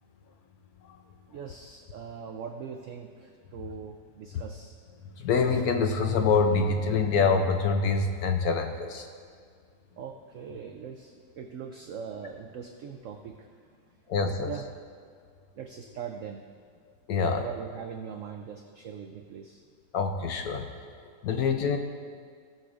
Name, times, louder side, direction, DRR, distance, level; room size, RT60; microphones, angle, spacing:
voice 1, 1.3-4.7 10.0-13.5 14.5-14.7 15.6-16.4 17.1-19.6, right 7 dB, 90° right, 5 dB, 0.6 m, -41 dB
voice 2, 5.2-9.1 14.1-14.5 17.1-17.4 19.9-20.7 21.2-21.8, left 4 dB, 70° left, 5 dB, 1.0 m, -25 dB
16.5 x 6.6 x 2.5 m, 2.1 s
omnidirectional pair, 1.9 m